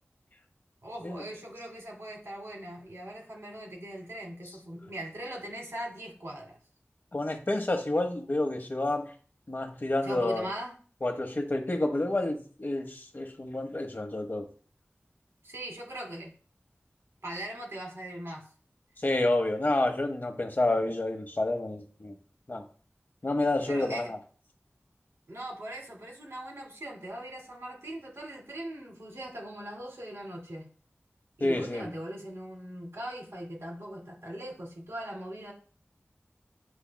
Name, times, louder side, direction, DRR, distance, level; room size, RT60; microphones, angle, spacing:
voice 1, 0.8-6.6 10.0-10.7 15.4-16.3 17.2-18.5 23.7-24.1 25.3-30.7 31.4-35.5, right 1 dB, 80° right, -1 dB, 1.7 m, -40 dB
voice 2, 7.1-9.1 9.5-10.5 11.0-14.5 19.0-22.2 22.5-22.7 23.2-24.2 31.4-31.9, left 2 dB, 45° left, 5 dB, 0.8 m, -29 dB
7.9 x 3.0 x 2.2 m, 0.41 s
wide cardioid pair, 45°, 5 cm